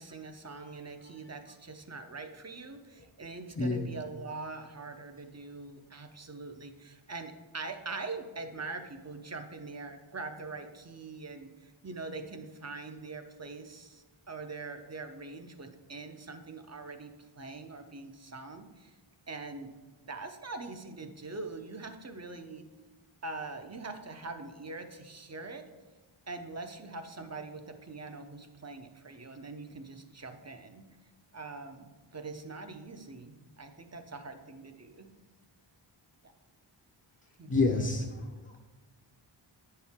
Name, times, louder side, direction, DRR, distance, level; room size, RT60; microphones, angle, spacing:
voice 1, 0.0-17.1 17.4-19.0 19.3-19.7 20.0-22.7 23.2-25.7 26.3-30.8 31.3-35.1 36.2-36.3 37.4-37.5, right 3 dB, 30° right, 6 dB, 0.7 m, -43 dB
voice 2, 3.6-3.9 37.5-38.2, left 3 dB, 25° left, -1 dB, 0.7 m, -28 dB
8.7 x 4.5 x 3.6 m, 1.2 s
wide cardioid pair, 70°, 49 cm